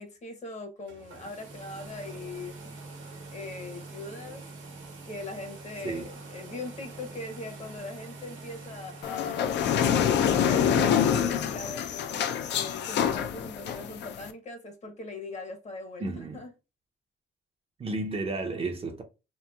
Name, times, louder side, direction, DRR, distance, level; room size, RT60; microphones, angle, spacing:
voice 1, 0.0-2.8 3.3-4.4 5.0-9.7 10.2-16.5, left 2 dB, 35° left, 0.8 m, -41 dB
sound 1, 0.8-9.7, right 3 dB, 80° right, 1.0 m, -45 dB
sound 2, 9.0-14.3, left 8 dB, 60° left, 0.4 m, -26 dB
voice 2, 16.0-16.4 17.8-19.0, right 3 dB, 30° right, 0.5 m, -32 dB
2.9 x 2.4 x 2.2 m
cardioid pair, 90°, 20 cm